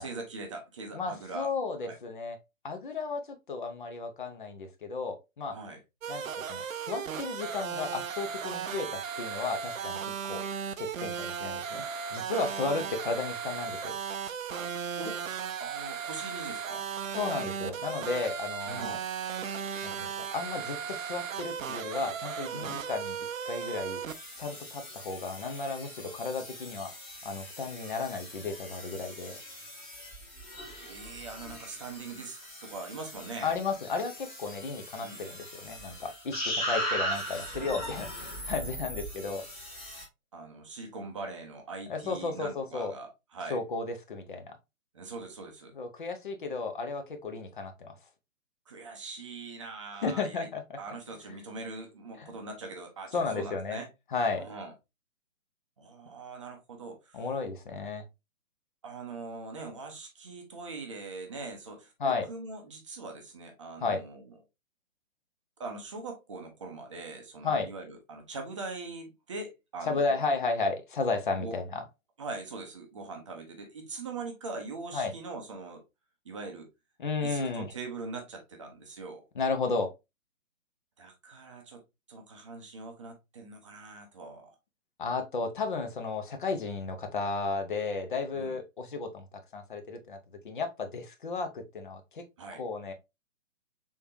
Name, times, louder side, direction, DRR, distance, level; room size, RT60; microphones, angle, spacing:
voice 1, 0.0-1.5 1.8-2.0 5.5-5.8 15.0-15.2 15.6-16.8 18.6-19.0 22.5-22.8 30.7-33.6 35.0-35.2 40.3-43.6 44.9-45.7 48.7-50.5 50.8-53.9 54.4-54.7 55.8-57.3 58.8-64.3 65.6-70.2 71.4-71.6 72.2-75.8 76.2-76.7 77.2-79.3 81.0-81.8 82.1-84.5 88.3-88.6 92.4-92.6, right 3 dB, 25° right, 0.6 m, -42 dB
voice 2, 0.9-2.4 2.6-5.6 6.1-6.2 6.5-10.4 10.8-14.0 17.1-19.0 19.8-23.2 23.5-24.0 24.4-26.9 27.2-29.4 33.4-39.4 41.9-42.9 43.5-44.5 45.7-48.0 50.0-50.6 52.2-52.3 53.1-53.8 54.1-54.5 57.1-58.1 62.0-62.3 63.8-64.0 67.4-67.7 69.9-71.8 74.9-75.1 77.0-77.7 79.4-79.9 85.0-89.3 89.5-90.2 90.4-92.2 92.5-92.9, left 4 dB, 40° left, 0.6 m, -33 dB
sound 1, 6.0-24.1, right 7 dB, 75° right, 0.5 m, -36 dB
sound 2, 24.1-40.0, equal, 15° left, 1.4 m, -39 dB
3.5 x 3.3 x 2.5 m
figure-of-eight pair, 135°, 41 cm